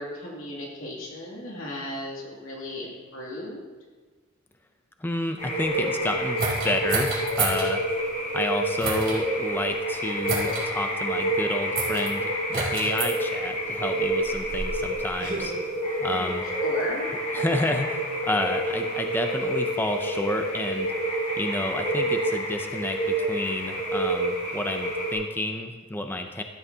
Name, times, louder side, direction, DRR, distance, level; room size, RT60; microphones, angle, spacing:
voice 1, 0.0-3.6 16.1-16.3 16.6-17.1, left 1 dB, 85° left, -3 dB, 2.5 m, -36 dB
voice 2, 5.0-7.8 8.3-15.5 16.0-16.4 17.3-20.9 21.4-26.4, left 1 dB, 10° left, 5 dB, 0.4 m, -30 dB
sound 1, 5.4-25.1, right 1 dB, 40° left, 3.1 m, -28 dB
sound 2, 6.4-7.7 8.8-9.2 10.2-10.6 11.7-12.1 12.5-13.1 14.0-15.5, right 3 dB, 45° right, 2.7 m, -29 dB
13.0 x 8.2 x 2.8 m, 1.4 s
head